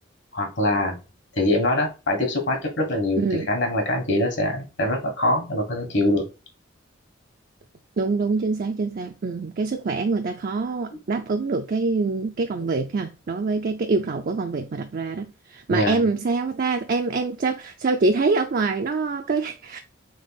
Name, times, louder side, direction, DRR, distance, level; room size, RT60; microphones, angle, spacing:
voice 1, 0.3-1.0 1.3-6.3 15.7-16.0, left 1 dB, 65° left, 1.6 m, -23 dB
voice 2, 3.2-3.5 8.0-19.8, right 3 dB, 45° right, 0.4 m, -25 dB
3.8 x 3.3 x 4.0 m
head